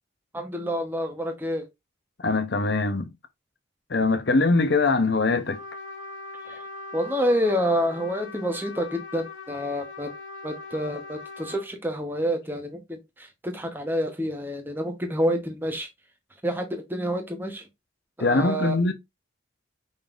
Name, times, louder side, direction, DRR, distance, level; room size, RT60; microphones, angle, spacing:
voice 1, 0.3-1.6 6.5-6.6 6.9-10.1 10.4-15.9 16.4-17.7 18.2-18.8, equal, 10° right, 0.9 m, -28 dB
voice 2, 2.2-3.1 3.9-5.6 18.2-18.9, left 3 dB, 55° left, 0.7 m, -22 dB
Trumpet, 5.5-11.7, left 3 dB, 80° left, 1.1 m, -40 dB
5.3 x 3.9 x 2.5 m
head